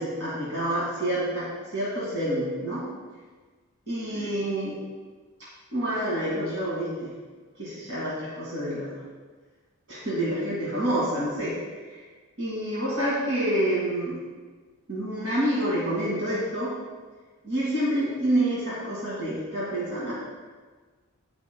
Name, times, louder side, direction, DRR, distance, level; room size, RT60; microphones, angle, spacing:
voice 1, 0.0-2.9 3.9-4.7 5.7-7.1 7.6-8.9 9.9-11.5 11.9-12.0 12.4-14.2 14.9-16.7 17.4-20.1, right 1 dB, 65° right, -8 dB, 2.4 m, -28 dB
17.5 x 5.9 x 2.3 m, 1.4 s
head